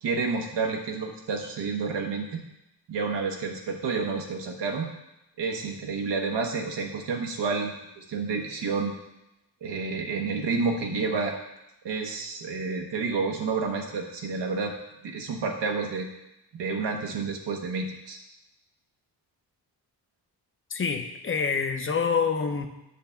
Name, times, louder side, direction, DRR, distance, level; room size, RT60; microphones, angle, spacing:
voice 1, 0.0-2.4 2.9-4.9 5.4-8.9 9.6-11.4 11.8-14.7 15.0-16.1 16.5-18.2, right 4 dB, 80° right, 1 dB, 1.2 m, -29 dB
voice 2, 20.7-22.7, left 5 dB, 30° left, 6 dB, 0.7 m, -26 dB
10.0 x 3.4 x 7.1 m, 0.90 s
wide cardioid pair, 175°, 41 cm